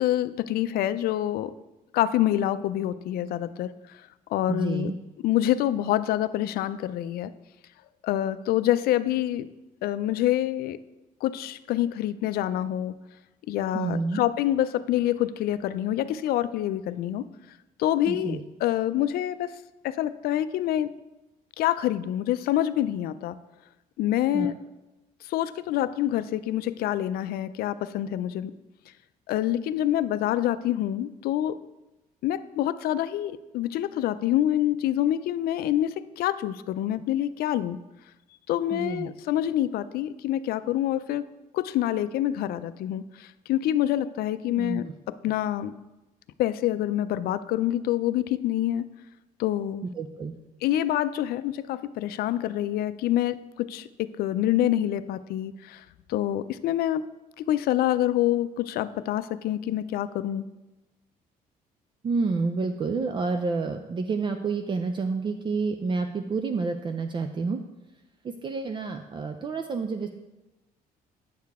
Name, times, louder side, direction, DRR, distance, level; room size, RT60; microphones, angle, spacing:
voice 1, 0.0-1.5 1.9-3.7 4.3-4.9 5.2-7.3 8.0-9.5 9.8-10.8 11.2-12.9 13.5-17.3 17.8-19.5 19.8-20.9 21.6-23.4 24.0-24.5 25.2-28.5 29.3-31.6 32.2-37.8 38.5-41.3 41.5-45.7 46.4-48.8 49.4-49.9 50.6-57.0 57.4-60.4, left 12 dB, 75° left, 14 dB, 0.4 m, -26 dB
voice 2, 4.5-4.9 13.7-14.2 18.1-18.4 24.3-24.5 38.7-39.1 44.6-44.8 50.0-50.4 62.0-67.6 68.2-70.1, right 4 dB, 30° right, 6 dB, 0.4 m, -29 dB
9.2 x 6.6 x 3.5 m, 1.0 s
cardioid pair, 120°, 16 cm